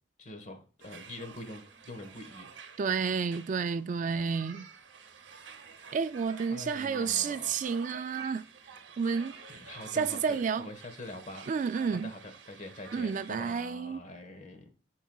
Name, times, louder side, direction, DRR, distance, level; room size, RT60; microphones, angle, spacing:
voice 1, 0.2-2.5 6.5-7.5 9.5-11.5 11.9-14.7, left 1 dB, 40° left, 1.3 m, -45 dB
sound 1, 0.8-13.3, right 5 dB, 75° right, 0.8 m, -50 dB
voice 2, 2.8-4.7 5.9-8.4 9.0-9.4 9.9-10.7 11.5-12.1 12.9-14.0, right 6 dB, 45° right, 0.3 m, -30 dB
14.0 x 4.7 x 2.3 m
head